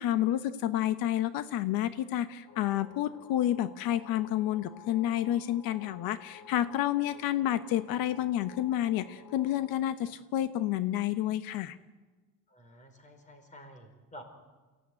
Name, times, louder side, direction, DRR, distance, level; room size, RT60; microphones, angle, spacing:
voice 1, 0.0-11.8, left 12 dB, 90° left, 12 dB, 1.0 m, -30 dB
sound 1, 2.5-9.7, left 6 dB, 55° left, 2.5 m, -53 dB
voice 2, 12.5-14.2, equal, 20° left, 5 dB, 4.7 m, -51 dB
28.5 x 16.0 x 9.6 m, 1.3 s
cardioid pair, 165°, 34 cm